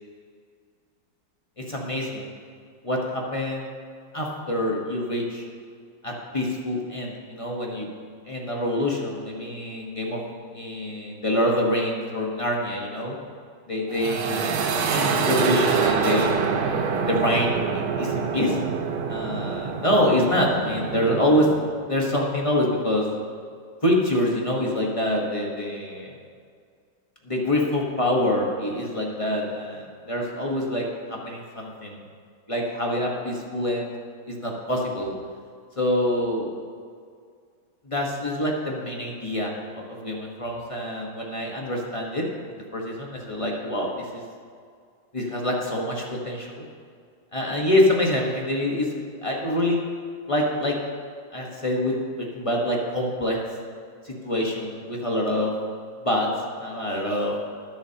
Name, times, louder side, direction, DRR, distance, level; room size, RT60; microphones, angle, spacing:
voice 1, 1.6-2.3 2.8-3.7 4.1-5.5 6.0-7.9 8.2-10.2 10.5-13.2 13.7-16.4 17.1-18.6 19.1-21.5 21.9-23.1 23.8-26.1 27.2-32.0 32.5-33.9 34.3-35.1 35.8-36.5 37.8-44.2 45.1-46.6 47.3-49.8 50.3-50.7 51.3-53.4 54.0-55.5 56.0-56.3 56.6-57.3, left 1 dB, 20° left, -2 dB, 0.9 m, -26 dB
sound 1, 13.9-21.7, right 5 dB, 80° right, 1.7 m, -26 dB
20.5 x 7.1 x 2.9 m, 2.1 s
omnidirectional pair, 2.3 m